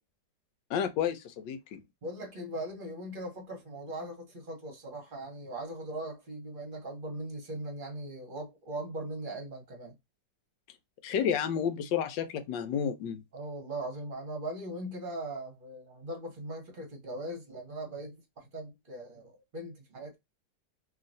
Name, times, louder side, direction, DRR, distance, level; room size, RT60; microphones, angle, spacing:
voice 1, 0.7-1.8 11.0-13.2, left 8 dB, 80° left, 1.3 m, -31 dB
voice 2, 2.0-9.9 13.3-20.2, right 1 dB, 35° right, 1.0 m, -40 dB
3.0 x 2.7 x 2.5 m
omnidirectional pair, 2.0 m